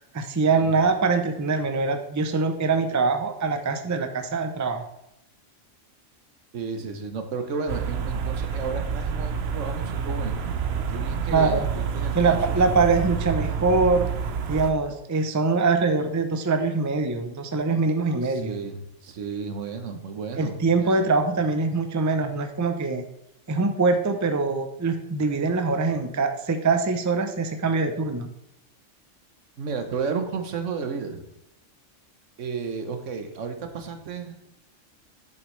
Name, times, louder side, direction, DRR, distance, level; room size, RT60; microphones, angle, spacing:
voice 1, 0.0-4.8 11.3-11.7 12.1-14.1 14.5-18.6 20.4-23.0 23.5-28.3, right 4 dB, 20° right, 7 dB, 0.5 m, -23 dB
voice 2, 6.5-10.5 10.9-12.6 18.2-21.0 29.6-31.2 32.4-34.5, right 5 dB, 75° right, 7 dB, 1.3 m, -33 dB
sound 1, 7.7-14.7, right 6 dB, 60° right, 0.9 m, -28 dB
8.2 x 7.0 x 3.2 m, 0.85 s
omnidirectional pair, 1.3 m